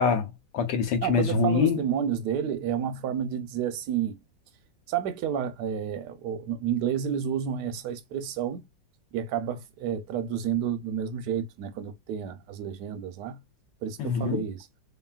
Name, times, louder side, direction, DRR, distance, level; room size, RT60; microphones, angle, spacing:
voice 1, 0.0-1.8 14.0-14.4, left 5 dB, 70° left, 1.4 m, -25 dB
voice 2, 1.0-4.2 4.9-8.6 9.1-13.4 13.8-14.7, right 9 dB, 70° right, 1.0 m, -30 dB
3.0 x 2.6 x 2.3 m
omnidirectional pair, 2.1 m